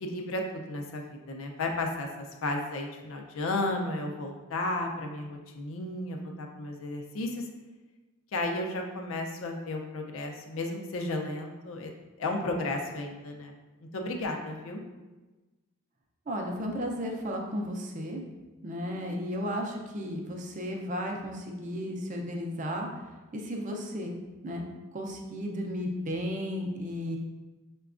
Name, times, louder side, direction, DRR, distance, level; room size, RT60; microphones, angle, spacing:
voice 1, 0.0-7.4 8.3-11.9 12.2-13.5 13.9-14.8, left 2 dB, 70° left, 2 dB, 0.5 m, -33 dB
voice 2, 16.3-18.2 18.6-22.9 23.3-24.1 24.4-24.6 24.9-27.2, equal, 35° right, 1 dB, 0.5 m, -34 dB
5.7 x 2.2 x 2.4 m, 1.2 s
head